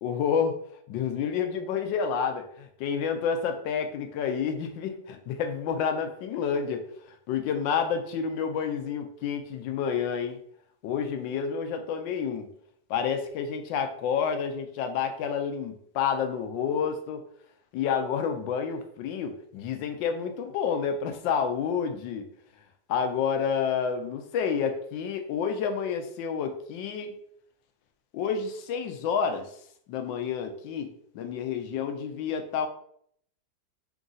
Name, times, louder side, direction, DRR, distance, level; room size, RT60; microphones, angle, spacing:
voice 1, 0.0-0.6 0.9-10.4 10.8-12.5 12.9-17.2 17.7-22.3 22.9-27.1 28.1-29.6 29.9-32.7, left 7 dB, 80° left, 6 dB, 1.3 m, -29 dB
3.8 x 2.5 x 3.9 m, 0.67 s
omnidirectional pair, 2.0 m